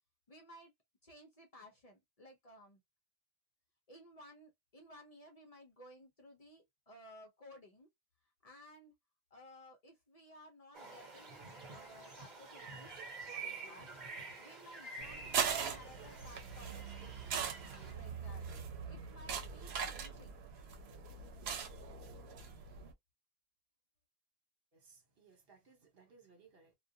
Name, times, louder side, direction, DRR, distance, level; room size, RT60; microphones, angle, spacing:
voice 1, 0.3-0.7 1.0-2.8 3.9-7.9 8.4-8.9 9.3-13.9 14.4-17.4 17.9-18.5 18.9-20.4, equal, 45° left, 0.6 m, -57 dB
sound 1, 10.7-17.9, right 3 dB, 50° right, 1.1 m, -49 dB
sound 2, 15.0-22.9, right 7 dB, 90° right, 0.8 m, -41 dB
voice 2, 24.7-26.8, right 5 dB, 70° right, 1.2 m, -64 dB
2.3 x 2.2 x 2.6 m
omnidirectional pair, 1.0 m